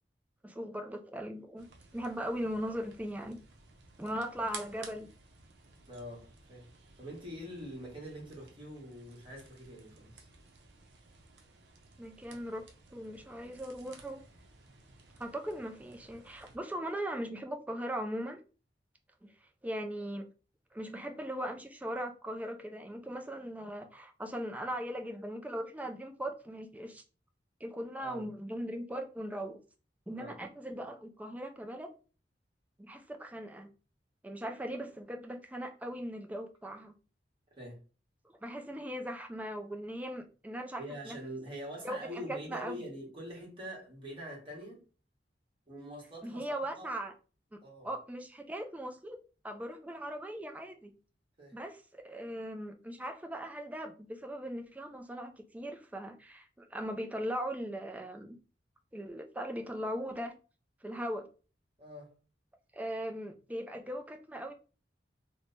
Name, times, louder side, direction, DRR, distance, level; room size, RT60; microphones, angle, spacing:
voice 1, 0.4-1.7 1.9-3.4 4.0-5.1 12.0-14.2 15.2-18.4 19.2-19.3 19.6-20.3 20.7-27.0 27.6-29.6 30.1-31.9 32.8-33.7 34.2-36.9 38.4-41.2 41.8-42.8 46.2-47.1 47.5-47.6 47.8-49.2 49.4-50.9 51.5-58.4 58.9-60.3 60.8-61.3 62.7-64.5, equal, 10° right, 0.4 m, -39 dB
sound 1, 1.6-16.6, right 4 dB, 70° right, 0.7 m, -55 dB
voice 2, 5.9-6.7 7.0-10.3 28.0-28.2 30.2-30.4 37.6-37.8 40.8-44.8 45.7-46.9 47.6-47.9 51.4-51.6 61.8-62.1, equal, 30° right, 1.3 m, -44 dB
3.1 x 2.1 x 3.9 m
head